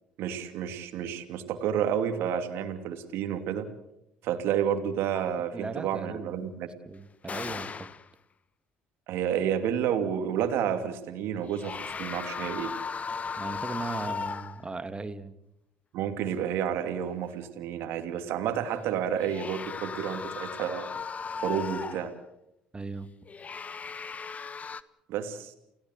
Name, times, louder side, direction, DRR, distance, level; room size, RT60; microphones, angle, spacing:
voice 1, 0.2-3.7 4.2-6.7 9.1-12.7 15.9-20.9 21.4-22.1 25.1-25.5, right 9 dB, 70° right, 7 dB, 2.8 m, -30 dB
sound 1, 5.1-5.4 7.2-8.1 11.4-14.7 19.1-22.2 23.3-24.8, left 5 dB, 35° left, 1.2 m, -37 dB
voice 2, 5.5-6.4 6.9-7.9 13.4-15.4 22.7-23.1, right 3 dB, 25° right, 11 dB, 2.1 m, -37 dB
29.5 x 16.5 x 8.0 m, 0.84 s
hypercardioid pair, 65°, 4 cm